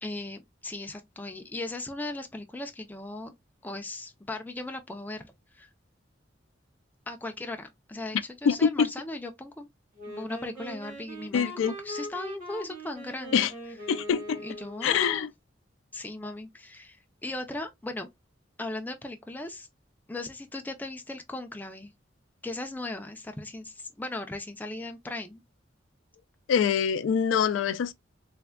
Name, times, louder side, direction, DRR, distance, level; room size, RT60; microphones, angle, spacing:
voice 1, 0.0-3.3 3.6-5.3 5.5-5.7 7.1-9.7 10.1-13.5 14.4-15.3 15.9-17.0 17.2-18.1 18.6-19.7 20.1-21.9 22.4-25.4, left 2 dB, 10° left, 0.4 m, -37 dB
voice 2, 8.4-8.9 11.3-11.7 13.3-13.5 13.9-14.4 14.8-15.3 26.5-27.9, left 7 dB, 85° left, 0.3 m, -24 dB
Wind instrument woodwind instrument, 10.0-15.2, equal, 45° right, 1.3 m, -41 dB
3.3 x 2.1 x 2.2 m
head